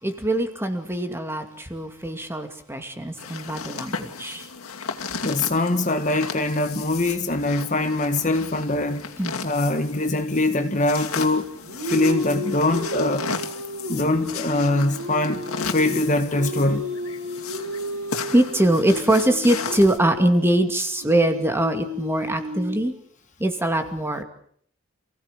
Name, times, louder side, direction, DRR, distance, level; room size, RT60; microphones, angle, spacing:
voice 1, 0.0-4.5 9.2-9.4 18.3-22.9 23.4-24.2, right 1 dB, 10° right, 2.4 m, -22 dB
sound 1, 3.2-20.0, left 5 dB, 90° left, 2.6 m, -35 dB
voice 2, 5.2-9.0 9.4-11.5 11.9-13.3 13.9-15.4 15.7-16.8, left 2 dB, 35° left, 1.6 m, -22 dB
sound 2, 11.4-22.8, left 1 dB, 65° right, 5.6 m, -33 dB
28.5 x 17.0 x 8.3 m
head